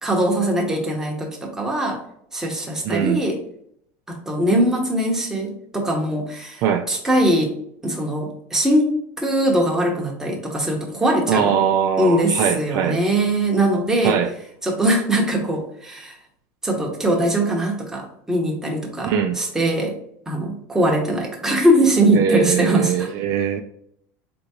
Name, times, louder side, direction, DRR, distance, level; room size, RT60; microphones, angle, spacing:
voice 1, 0.0-2.0 2.3-3.4 4.1-7.6 7.8-11.6 12.0-14.2 14.6-16.2 16.6-20.0 20.3-23.1, right 1 dB, 5° right, -1 dB, 1.0 m, -21 dB
voice 2, 2.8-3.2 6.6-6.8 11.3-13.0 14.0-14.3 19.0-19.4 22.1-23.6, right 8 dB, 50° right, 5 dB, 0.4 m, -21 dB
3.8 x 3.5 x 3.0 m, 0.69 s
supercardioid pair, 125°, 8 cm